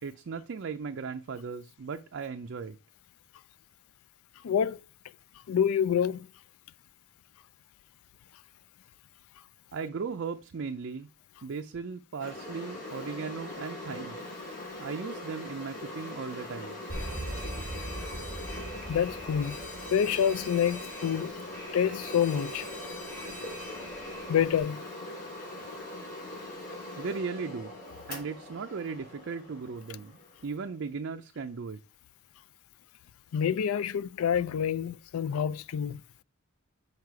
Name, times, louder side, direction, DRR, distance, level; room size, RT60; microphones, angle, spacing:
voice 1, 0.0-2.8 9.7-11.1 11.4-14.2 14.8-16.8 27.0-27.7 28.1-31.8, right 5 dB, 55° right, 0.4 m, -37 dB
voice 2, 4.4-4.8 5.5-6.3 18.9-19.6 19.9-21.3 21.7-22.7 24.3-24.8 33.3-36.0, left 8 dB, 80° left, 0.4 m, -27 dB
sound 1, 12.2-30.7, left 1 dB, 40° left, 3.4 m, -41 dB
Alarm, 16.9-24.6, equal, 10° left, 2.7 m, -41 dB
6.5 x 4.7 x 4.7 m
head